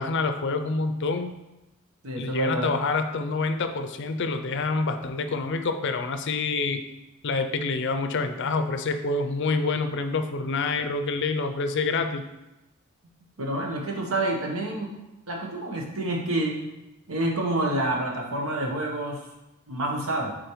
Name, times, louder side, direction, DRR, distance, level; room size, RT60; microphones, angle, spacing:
voice 1, 0.0-1.3 2.2-6.8 7.2-12.2, left 3 dB, 55° left, 7 dB, 0.5 m, -27 dB
voice 2, 2.0-2.7 13.4-14.9 15.3-16.6 17.1-19.2 19.7-20.3, right 1 dB, 70° right, 0 dB, 1.2 m, -28 dB
7.9 x 4.1 x 3.1 m, 0.99 s
head